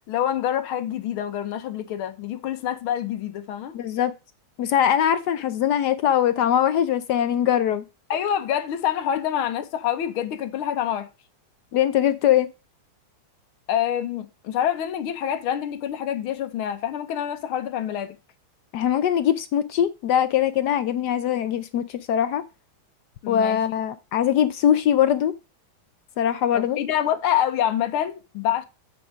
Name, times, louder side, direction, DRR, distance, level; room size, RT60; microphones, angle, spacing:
voice 1, 0.1-3.8 8.1-11.1 13.7-18.2 23.2-23.6 26.5-28.7, left 10 dB, 90° left, 1.8 m, -26 dB
voice 2, 3.7-4.1 4.6-7.8 11.7-12.5 18.7-22.4 23.3-25.3 26.2-26.8, left 10 dB, 70° left, 1.0 m, -21 dB
8.5 x 5.1 x 4.9 m
omnidirectional pair, 2.3 m